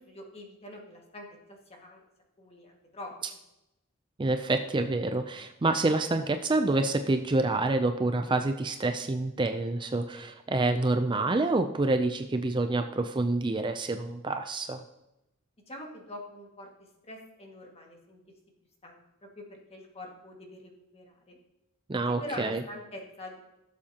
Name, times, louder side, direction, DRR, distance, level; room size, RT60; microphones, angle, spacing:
voice 1, 0.0-2.0 2.4-3.4 15.7-16.7 17.0-18.2 18.8-19.0 19.4-21.4 22.2-23.4, left 1 dB, 30° left, 0 dB, 1.9 m, -44 dB
voice 2, 4.2-14.8 21.9-22.6, right 2 dB, 25° right, 7 dB, 0.4 m, -27 dB
17.0 x 7.3 x 2.9 m, 0.92 s
head